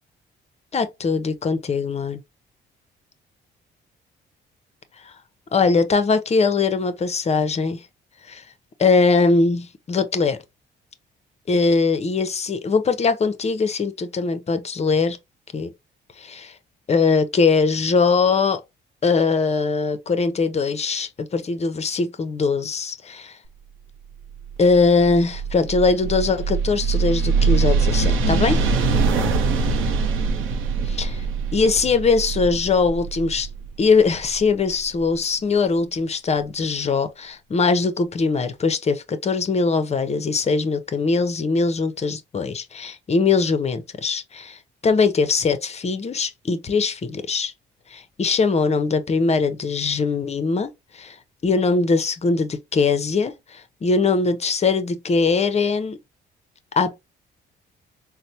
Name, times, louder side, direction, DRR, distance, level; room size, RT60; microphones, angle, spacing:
voice 1, 0.7-2.2 5.5-7.8 8.3-8.4 8.8-10.4 11.5-15.2 15.5-15.7 16.2-16.5 16.9-18.6 19.0-23.4 24.6-28.6 30.9-31.2 31.5-33.5 33.8-47.5 47.9-51.2 51.4-56.0 56.8-57.0, left 4 dB, 35° left, 0.6 m, -21 dB
sound 1, 24.2-35.0, right 4 dB, 90° right, 0.6 m, -23 dB
4.1 x 2.0 x 2.8 m
cardioid pair, 90°, 20 cm